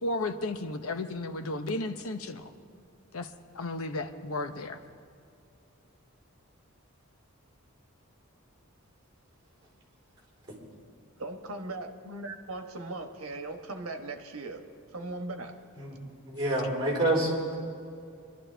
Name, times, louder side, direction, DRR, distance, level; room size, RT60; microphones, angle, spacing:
voice 1, 0.0-2.5 3.1-4.8, left 2 dB, 75° left, 8 dB, 0.8 m, -34 dB
voice 2, 11.2-14.6 14.9-15.5, right 2 dB, 75° right, 5 dB, 1.2 m, -38 dB
voice 3, 15.7-17.5, right 1 dB, 25° right, -2 dB, 4.1 m, -28 dB
23.5 x 12.5 x 3.4 m, 2.5 s
head